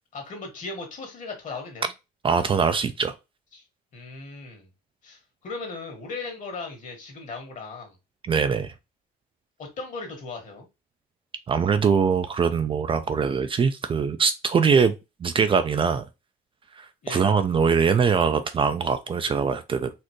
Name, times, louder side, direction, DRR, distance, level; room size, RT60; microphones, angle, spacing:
voice 1, 0.1-1.9 3.5-3.6 3.9-4.7 5.0-8.0 9.6-10.7 17.0-17.4, left 3 dB, 50° left, 1.8 m, -37 dB
voice 2, 2.2-3.1 8.3-8.7 11.5-14.9 15.2-16.1 16.8-19.9, right 6 dB, 30° right, 0.4 m, -22 dB
4.3 x 2.6 x 3.0 m
cardioid pair, 110°, 17 cm